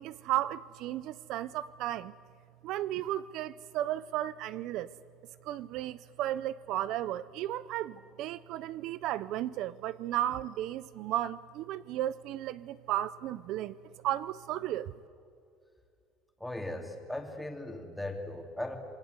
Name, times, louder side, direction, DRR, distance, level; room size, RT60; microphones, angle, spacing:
voice 1, 0.0-2.1 2.6-4.9 5.4-13.8 14.0-14.9, right 13 dB, 60° right, 17 dB, 0.5 m, -34 dB
voice 2, 16.4-18.8, left 1 dB, 5° left, 3 dB, 2.8 m, -38 dB
27.5 x 22.5 x 8.2 m, 2.5 s
cardioid pair, 160°, 0 cm